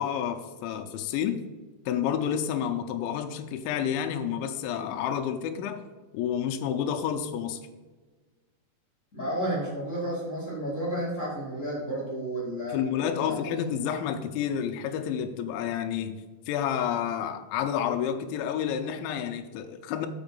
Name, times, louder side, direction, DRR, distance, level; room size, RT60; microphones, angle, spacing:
voice 1, 0.0-1.4 1.9-5.8 6.1-7.6 12.7-16.2 16.5-20.1, left 9 dB, 85° left, 5 dB, 3.0 m, -29 dB
voice 2, 9.1-12.8 13.2-13.4, right 1 dB, 30° left, -7 dB, 1.4 m, -31 dB
7.2 x 5.8 x 5.3 m, 1.3 s
omnidirectional pair, 5.3 m